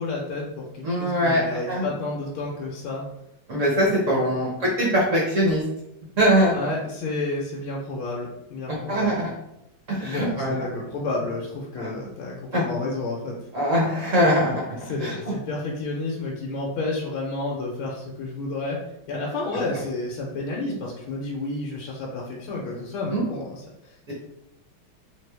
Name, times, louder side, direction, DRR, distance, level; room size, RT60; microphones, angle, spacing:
voice 1, 0.0-3.1 4.2-4.4 6.5-9.1 10.0-13.4 14.1-14.2 14.8-18.8 19.1-24.1, left 2 dB, 85° left, -3 dB, 1.5 m, -31 dB
voice 2, 0.8-1.9 3.5-5.6 6.2-6.7 8.7-9.3 9.9-10.7 11.8-11.9 12.5-12.6 13.5-14.5 15.0-15.2 23.1-23.2 24.1-24.2, equal, 60° right, -3 dB, 0.8 m, -22 dB
3.7 x 2.9 x 3.3 m, 0.85 s
omnidirectional pair, 2.3 m